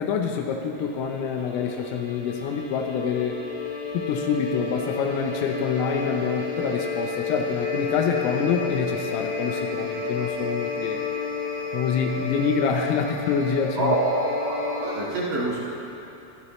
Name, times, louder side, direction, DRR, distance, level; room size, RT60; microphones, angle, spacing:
voice 1, 0.0-3.4 3.9-11.0 11.7-14.0, left 6 dB, 80° left, 3 dB, 3.4 m, -26 dB
sound 1, 0.7-15.0, left 4 dB, 45° left, 0.7 m, -31 dB
voice 2, 13.8-15.6, right 2 dB, 60° right, -6 dB, 2.5 m, -25 dB
23.5 x 13.0 x 3.1 m, 2.8 s
omnidirectional pair, 6.0 m